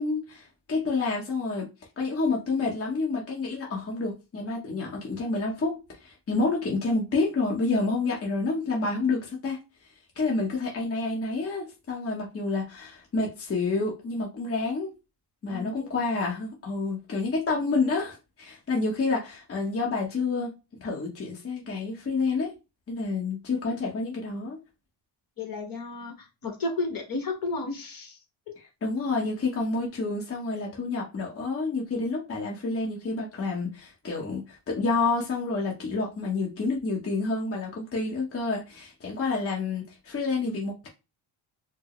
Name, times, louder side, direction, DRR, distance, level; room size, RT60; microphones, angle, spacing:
voice 1, 0.0-1.7 2.0-9.6 10.2-14.9 15.4-22.5 22.9-24.6 28.6-40.9, left 3 dB, 30° left, 1.1 m, -29 dB
voice 2, 15.5-16.0 25.4-28.2, left 3 dB, 45° left, 1.3 m, -33 dB
4.5 x 2.1 x 3.1 m
cardioid pair, 110°, 47 cm